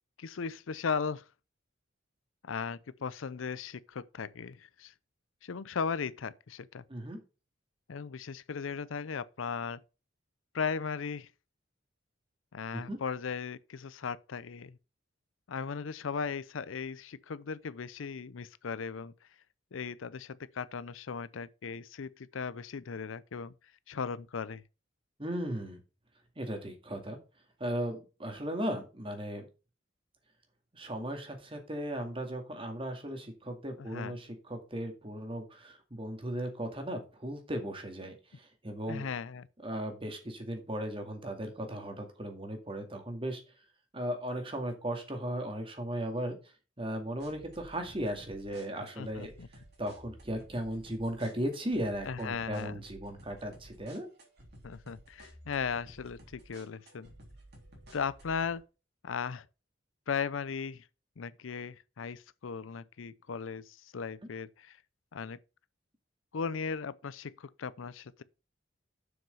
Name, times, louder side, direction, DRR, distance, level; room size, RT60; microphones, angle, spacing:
voice 1, 0.2-1.3 2.4-4.9 5.4-6.8 7.9-9.8 10.5-11.3 12.5-14.8 15.5-19.1 19.7-23.5 23.9-24.6 33.8-34.2 38.9-39.5 49.0-49.5 52.0-52.8 54.6-57.1 57.9-58.6 59.0-59.5 60.1-60.9 61.2-64.8 65.1-65.4 66.3-68.2, left 6 dB, 85° left, 0.5 m, -37 dB
voice 2, 25.2-25.8 26.4-27.2 27.6-29.5 30.7-39.1 39.6-43.4 43.9-46.4 46.8-49.3 49.8-54.1, right 1 dB, 30° right, 2.0 m, -36 dB
sound 1, 47.2-58.5, right 1 dB, 60° right, 3.5 m, -54 dB
7.2 x 6.2 x 5.5 m
head